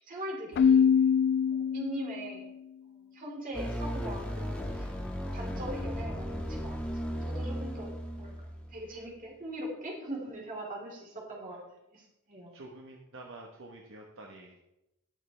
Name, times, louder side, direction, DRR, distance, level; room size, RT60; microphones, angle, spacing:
voice 1, 0.1-0.9 1.5-2.5 2.9-4.9 5.2-7.9 8.2-11.6 11.9-12.5, right 1 dB, 40° right, -2 dB, 3.9 m, -41 dB
Keyboard (musical), 0.6-2.4, left 7 dB, 50° left, 0.3 m, -24 dB
sound 1, 3.5-8.8, equal, 5° left, 1.8 m, -36 dB
voice 2, 12.5-14.6, right 2 dB, 60° right, 0 dB, 1.3 m, -48 dB
19.5 x 6.8 x 3.4 m, 0.90 s
head